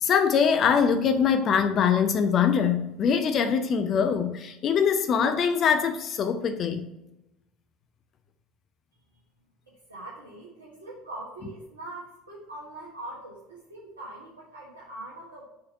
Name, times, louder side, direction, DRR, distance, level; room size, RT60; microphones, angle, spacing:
voice 1, 0.0-6.9, left 7 dB, 40° left, 8 dB, 0.5 m, -23 dB
voice 2, 9.7-15.4, right 2 dB, 80° right, -6 dB, 1.2 m, -42 dB
5.2 x 4.2 x 5.4 m, 0.91 s
figure-of-eight pair, 65°, 0 cm